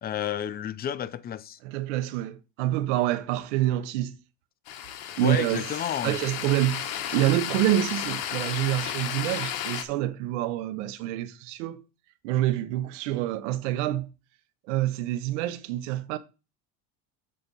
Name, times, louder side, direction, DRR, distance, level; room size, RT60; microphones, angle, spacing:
voice 1, 0.0-1.6 5.2-6.2, left 10 dB, 25° left, 0.5 m, -31 dB
voice 2, 1.6-4.2 5.2-5.7 6.0-11.8 12.2-14.1 14.6-16.2, right 14 dB, 90° right, 1.0 m, -27 dB
sound 1, 4.7-9.8, left 10 dB, 65° left, 1.4 m, -33 dB
7.7 x 4.0 x 5.4 m
supercardioid pair, 120°, 35 cm